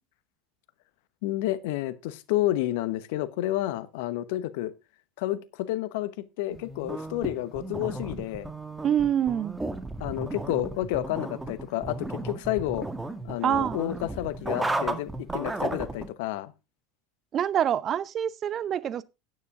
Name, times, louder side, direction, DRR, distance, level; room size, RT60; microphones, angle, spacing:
voice 1, 1.2-4.7 5.2-8.5 10.0-12.9 13.2-16.5, left 15 dB, 65° left, 1.0 m, -30 dB
sound 1, 6.5-16.1, right 2 dB, 10° right, 1.9 m, -34 dB
voice 2, 8.8-9.6 13.4-13.8 17.3-19.0, right 9 dB, 40° right, 0.7 m, -26 dB
9.8 x 9.5 x 3.7 m
hypercardioid pair, 80°, 0 cm